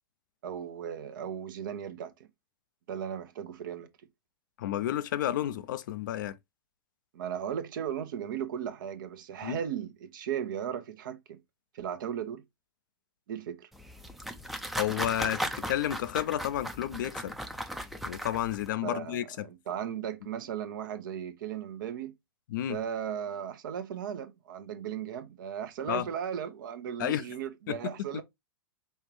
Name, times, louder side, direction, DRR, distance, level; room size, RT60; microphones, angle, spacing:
voice 1, 0.4-2.3 2.9-3.9 7.1-11.4 11.7-12.4 13.3-13.7 18.8-22.1 22.7-28.2, right 8 dB, 60° right, 0.8 m, -36 dB
voice 2, 4.6-6.4 9.4-9.6 14.8-17.3 18.0-19.5 22.5-22.8 25.9-26.0 27.0-27.2 27.7-27.9, left 12 dB, 60° left, 0.5 m, -31 dB
sound 1, 13.7-18.7, equal, ahead, 0.5 m, -37 dB
5.4 x 2.4 x 3.1 m
figure-of-eight pair, 100°, 12 cm